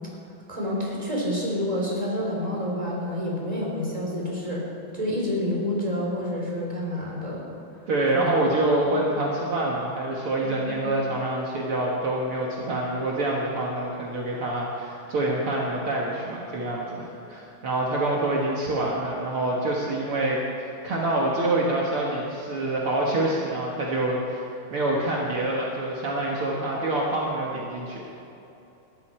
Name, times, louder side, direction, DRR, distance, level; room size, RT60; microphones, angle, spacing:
voice 1, 0.5-4.7 4.9-7.4 8.1-8.2 10.4-10.7, left 1 dB, 10° right, -3 dB, 3.2 m, -28 dB
voice 2, 7.9-28.1, right 1 dB, 65° right, -3 dB, 1.4 m, -26 dB
21.0 x 13.5 x 4.4 m, 2.9 s
omnidirectional pair, 4.8 m